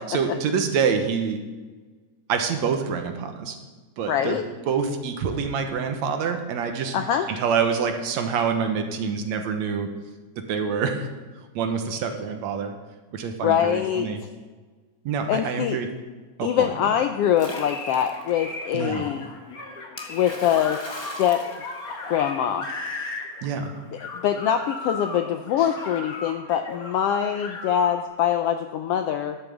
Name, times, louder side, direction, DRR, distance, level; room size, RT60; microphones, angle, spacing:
voice 1, 0.1-1.4 2.3-3.6 4.0-4.4 4.7-7.0 7.4-9.9 10.4-11.1 11.6-12.7 13.1-14.2 15.1-15.9 16.4-16.7 18.7-19.1 23.4-23.7, right 6 dB, 75° right, 5 dB, 2.3 m, -26 dB
voice 2, 4.1-4.5 6.9-7.3 13.4-14.1 15.3-15.8 16.4-19.3 20.1-20.8 21.2-21.4 22.1-22.7 24.2-29.4, left 9 dB, 80° left, 7 dB, 1.4 m, -23 dB
Splash splatter, 17.4-18.3 20.0-22.4, left 1 dB, 20° left, 0.7 m, -39 dB
sound 1, 17.5-28.0, left 3 dB, 40° left, 1.5 m, -36 dB
11.5 x 8.7 x 7.1 m, 1.3 s
omnidirectional pair, 3.3 m